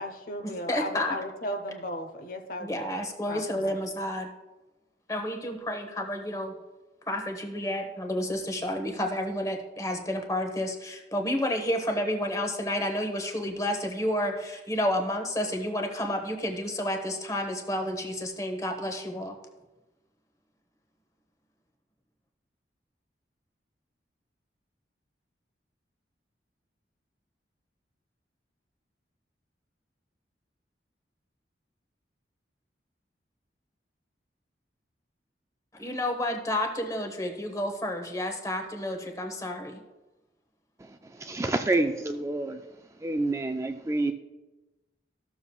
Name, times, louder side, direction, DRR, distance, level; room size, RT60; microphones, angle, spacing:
voice 1, 0.0-2.8 3.3-3.4, left 1 dB, 50° left, 6 dB, 0.8 m, -35 dB
voice 2, 0.7-1.2 2.6-4.3 5.1-6.5 7.1-19.4 35.8-39.8, left 1 dB, 20° left, 4 dB, 1.0 m, -30 dB
voice 3, 40.8-42.6 43.0-44.1, right 2 dB, 15° right, 6 dB, 0.3 m, -28 dB
14.0 x 7.0 x 2.3 m, 1.1 s
head